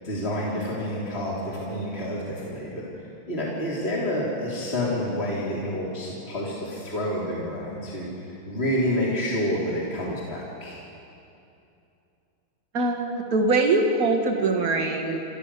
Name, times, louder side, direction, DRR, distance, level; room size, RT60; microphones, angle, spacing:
voice 1, 0.0-2.8 3.3-10.8, equal, 30° left, -6 dB, 3.3 m, -28 dB
voice 2, 12.7-15.2, right 3 dB, 45° right, 2 dB, 2.2 m, -23 dB
29.5 x 13.5 x 6.8 m, 2.7 s
omnidirectional pair, 2.2 m